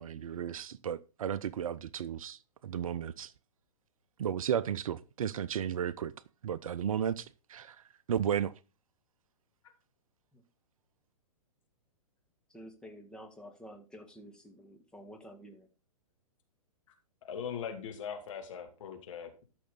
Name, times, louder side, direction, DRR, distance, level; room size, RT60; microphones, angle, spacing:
voice 1, 0.0-3.3 4.2-6.1 6.4-7.7 8.1-8.5, right 9 dB, 65° right, 0.6 m, -34 dB
voice 2, 12.5-15.7, equal, 5° left, 1.9 m, -50 dB
voice 3, 17.2-19.4, left 7 dB, 55° left, 2.5 m, -40 dB
13.0 x 6.3 x 3.9 m
figure-of-eight pair, 115°, 19 cm